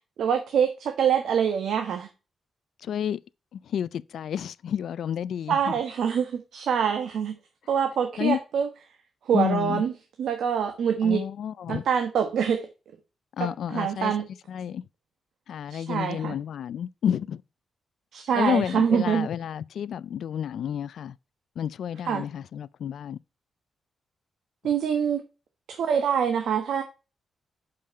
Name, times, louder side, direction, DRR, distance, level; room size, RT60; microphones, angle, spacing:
voice 1, 0.2-2.1 5.5-7.3 7.7-8.7 9.2-9.9 10.2-11.2 11.7-12.7 13.4-14.2 15.7-16.4 18.1-19.3 22.0-22.2 24.6-25.2 25.7-26.8, right 7 dB, 75° right, 1.2 m, -25 dB
voice 2, 2.8-3.2 3.5-5.6 8.2-8.4 9.3-9.8 11.0-11.9 13.4-14.1 14.5-14.8 15.5-17.4 18.3-21.2 21.6-23.2, left 9 dB, 65° left, 0.3 m, -30 dB
6.6 x 5.6 x 5.3 m
wide cardioid pair, 175°, 0 cm